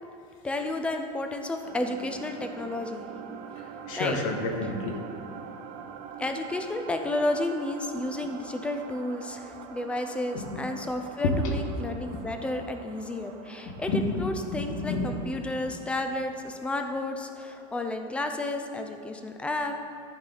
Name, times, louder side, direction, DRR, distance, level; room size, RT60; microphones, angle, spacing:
voice 1, 0.4-3.1 4.0-4.2 6.2-19.8, left 2 dB, 5° left, 5 dB, 0.4 m, -32 dB
sound 1, 1.6-18.4, right 7 dB, 45° right, 0.6 m, -45 dB
voice 2, 3.6-5.2 8.1-8.3 10.3-10.6 11.2-11.6 13.7-15.1, left 2 dB, 80° left, 2 dB, 1.3 m, -30 dB
13.5 x 4.4 x 3.9 m, 2.6 s
supercardioid pair, 160°, 17 cm